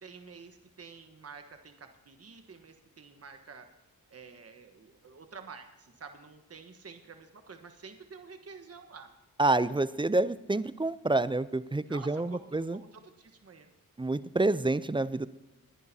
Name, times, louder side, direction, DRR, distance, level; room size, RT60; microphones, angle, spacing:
voice 1, 0.0-3.7 4.1-9.1 11.9-13.7, right 5 dB, 40° right, 6 dB, 1.3 m, -49 dB
voice 2, 9.4-12.8 14.0-15.3, right 2 dB, 15° right, 16 dB, 0.4 m, -28 dB
21.0 x 10.5 x 2.8 m, 1.0 s
cardioid pair, 65°, 35 cm